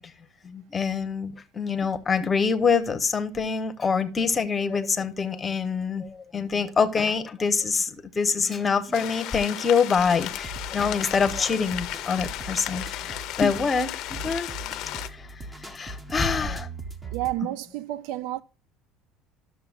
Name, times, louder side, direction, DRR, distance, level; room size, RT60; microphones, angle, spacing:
voice 1, 0.4-14.5 15.7-16.7, left 5 dB, 20° left, 0.8 m, -25 dB
sound 1, 8.9-15.1, left 14 dB, 55° left, 0.6 m, -35 dB
sound 2, 10.0-17.3, right 2 dB, 10° right, 0.7 m, -40 dB
voice 2, 17.1-18.4, right 15 dB, 75° right, 0.4 m, -30 dB
12.5 x 6.6 x 2.4 m
cardioid pair, 150°, 0 cm